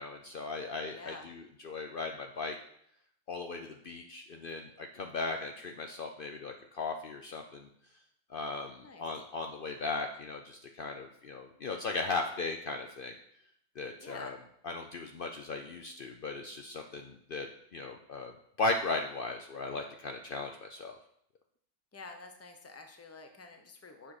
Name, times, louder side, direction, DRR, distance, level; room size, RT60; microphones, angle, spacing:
voice 1, 0.0-2.6 3.3-7.7 8.3-13.1 13.8-14.4 14.6-17.5 17.7-18.3 18.6-21.0, left 3 dB, 55° left, 4 dB, 0.8 m, -37 dB
voice 2, 0.9-1.3 8.8-9.1 14.0-14.4 21.9-24.1, left 3 dB, 15° left, 5 dB, 0.8 m, -48 dB
8.5 x 5.7 x 4.9 m, 0.70 s
omnidirectional pair, 1.2 m